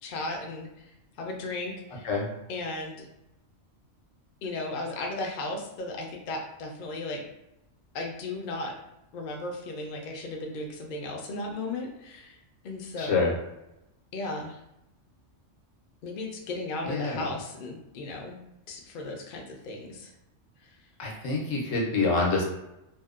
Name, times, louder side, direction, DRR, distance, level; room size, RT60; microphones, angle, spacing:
voice 1, 0.0-0.7 1.2-2.1 2.5-3.0 4.4-7.2 7.9-8.7 9.1-12.4 12.6-13.2 14.1-14.6 16.0-18.4 18.7-20.1, left 2 dB, 60° left, 1 dB, 0.5 m, -35 dB
voice 2, 13.0-13.3 16.8-17.3 21.0-22.4, left 3 dB, 90° left, -2 dB, 1.1 m, -26 dB
2.6 x 2.1 x 2.3 m, 0.89 s
omnidirectional pair, 1.3 m